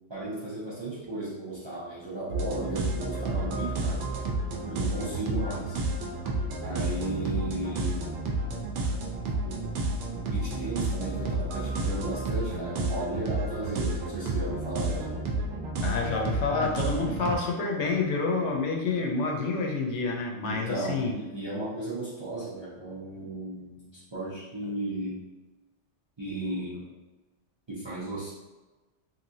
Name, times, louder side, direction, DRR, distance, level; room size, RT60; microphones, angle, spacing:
voice 1, 0.1-4.1 4.7-5.8 6.6-8.1 9.4-9.6 10.2-15.1 20.4-25.2 26.2-26.9 27.7-28.3, right 2 dB, 35° right, -8 dB, 0.5 m, -35 dB
sound 1, 2.3-17.3, right 2 dB, 75° right, 0.9 m, -31 dB
voice 2, 15.8-21.1, left 3 dB, 75° left, 1 dB, 0.9 m, -28 dB
3.1 x 2.6 x 2.6 m, 1.2 s
omnidirectional pair, 1.2 m